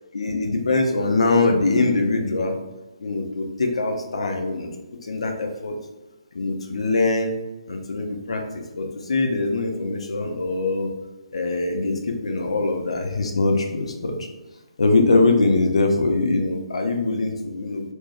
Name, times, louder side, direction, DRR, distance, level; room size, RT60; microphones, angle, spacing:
voice 1, 0.1-2.6 3.0-4.7 5.0-5.8 6.3-7.3 7.7-10.9 11.3-14.3 14.8-17.8, left 3 dB, 65° left, 4 dB, 0.5 m, -22 dB
2.5 x 2.3 x 4.0 m, 1.1 s
figure-of-eight pair, 140°, 3 cm